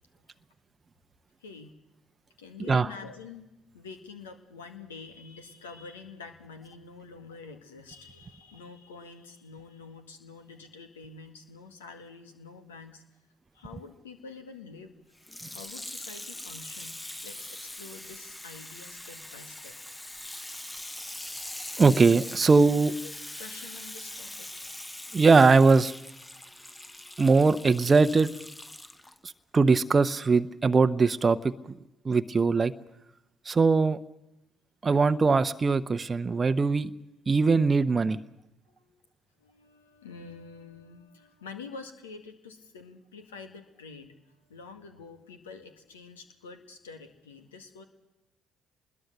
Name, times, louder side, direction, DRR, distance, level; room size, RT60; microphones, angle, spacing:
voice 1, 1.4-1.7 2.4-3.5 3.7-13.0 13.5-14.9 15.5-17.0 17.2-21.7 22.6-24.8 26.4-27.3 31.9-32.2 38.7-39.0 39.4-47.8, left 4 dB, 75° left, 8 dB, 1.8 m, -47 dB
Water tap faucet / Sink (filling or washing), 15.2-29.2 29.9-30.0, left 1 dB, 10° left, 0.9 m, -42 dB
voice 2, 21.8-22.9 25.1-25.9 27.2-28.3 29.5-31.5 32.0-32.7 33.5-34.0 34.8-36.9 37.3-38.2, right 4 dB, 30° right, 10 dB, 0.8 m, -21 dB
25.0 x 20.5 x 6.7 m, 0.95 s
figure-of-eight pair, 50°, 0 cm